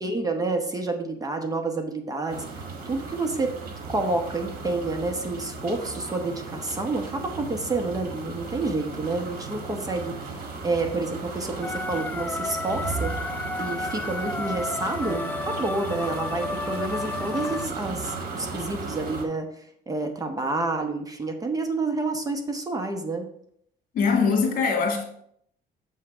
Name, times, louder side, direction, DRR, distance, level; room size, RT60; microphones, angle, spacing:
voice 1, 0.0-3.5 3.9-10.3 10.6-13.1 13.6-19.5 19.9-23.3, right 3 dB, 20° right, 5 dB, 0.9 m, -29 dB
sound 1, 2.3-19.2, right 4 dB, 60° right, 1.6 m, -36 dB
sound 2, 11.6-17.7, left 3 dB, 10° left, 0.3 m, -32 dB
voice 2, 23.9-25.0, left 5 dB, 55° left, 2 dB, 1.9 m, -22 dB
7.3 x 3.2 x 5.9 m, 0.68 s
cardioid pair, 110°, 17 cm